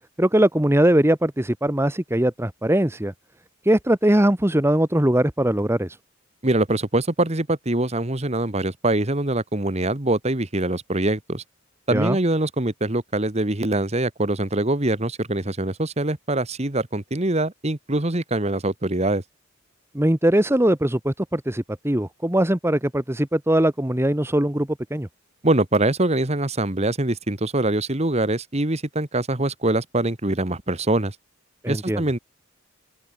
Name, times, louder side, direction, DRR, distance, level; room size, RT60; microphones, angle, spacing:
voice 1, 0.2-3.1 3.6-6.0 11.9-12.2 19.9-25.1 31.6-32.0, right 1 dB, 10° right, 1.1 m, -21 dB
voice 2, 6.4-11.4 11.9-19.2 25.4-31.1 31.7-32.2, right 2 dB, 30° right, 1.6 m, -23 dB
open air
head